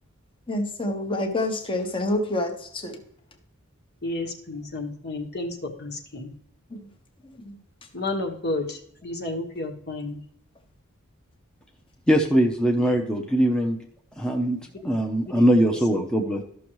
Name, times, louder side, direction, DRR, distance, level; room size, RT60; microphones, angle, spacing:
voice 1, 0.5-3.0 6.7-6.9 7.2-7.6, left 1 dB, 25° left, 4 dB, 1.1 m, -28 dB
voice 2, 4.0-6.4 7.9-10.2 14.5-15.7, left 2 dB, 50° left, 3 dB, 1.5 m, -32 dB
voice 3, 12.1-13.8 14.2-14.6 14.8-16.4, equal, 5° left, 0 dB, 0.8 m, -21 dB
13.5 x 6.3 x 3.1 m, 0.67 s
head